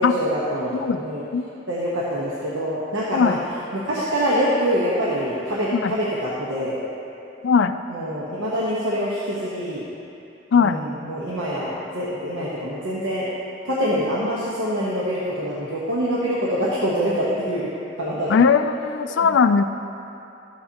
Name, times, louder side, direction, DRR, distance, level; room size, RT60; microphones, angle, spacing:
voice 1, 0.0-1.2 1.7-3.4 3.7-6.8 7.9-9.8 10.5-13.2 13.6-17.7 18.0-18.4 19.1-19.2, equal, 80° right, -7 dB, 1.1 m, -25 dB
voice 2, 0.7-1.0 1.3-1.4 3.1-3.4 5.7-5.9 7.4-7.8 10.5-10.8 18.3-19.6, left 5 dB, 70° left, 10 dB, 0.4 m, -19 dB
13.0 x 7.7 x 2.9 m, 2.8 s
head